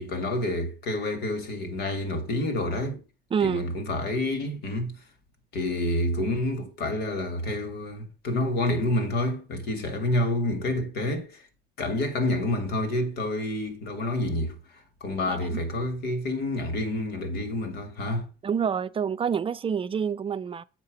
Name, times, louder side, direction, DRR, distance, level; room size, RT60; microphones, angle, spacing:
voice 1, 0.0-3.0 3.4-5.0 5.5-11.4 11.8-18.3, left 1 dB, 75° left, 2.2 m, -28 dB
voice 2, 3.3-3.6 15.3-15.6 18.4-20.6, right 7 dB, 35° right, 0.5 m, -27 dB
7.4 x 5.6 x 5.0 m
cardioid pair, 110°, 17 cm